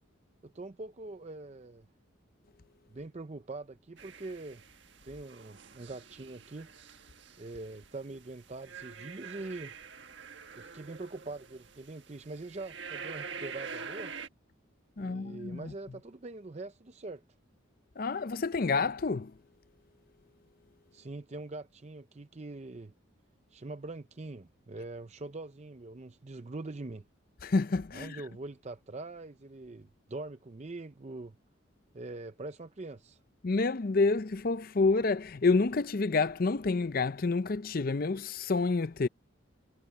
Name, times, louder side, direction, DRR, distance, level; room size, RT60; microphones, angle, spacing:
voice 1, 0.4-1.9 2.9-4.6 5.0-6.7 7.4-9.8 10.5-14.1 15.0-17.2 20.9-22.9 23.5-27.0 27.9-31.4 31.9-33.2, right 2 dB, 35° right, 0.5 m, -43 dB
sound 1, 4.0-14.3, right 6 dB, 60° right, 1.6 m, -46 dB
voice 2, 15.0-15.7 18.0-19.4 27.4-28.2 33.4-39.1, left 3 dB, 45° left, 0.5 m, -28 dB
head